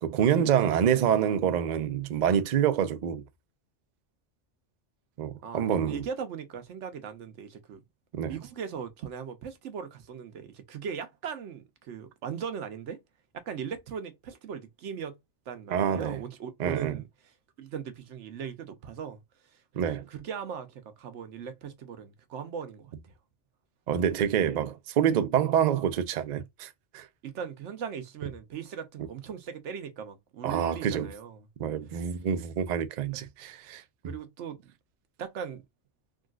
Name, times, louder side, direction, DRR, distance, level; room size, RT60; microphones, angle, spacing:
voice 1, 0.0-3.2 5.2-6.0 8.1-8.3 15.7-16.2 16.6-17.0 19.8-20.0 23.9-27.1 30.4-31.1 31.6-33.8, right 8 dB, 55° right, 0.5 m, -27 dB
voice 2, 5.4-7.8 8.2-13.0 13.3-15.2 15.5-17.1 17.6-19.2 19.5-22.9 27.2-31.5 33.1-33.3 34.0-34.7 35.2-35.6, right 7 dB, 85° right, 1.0 m, -39 dB
3.6 x 2.3 x 2.3 m
omnidirectional pair, 1.2 m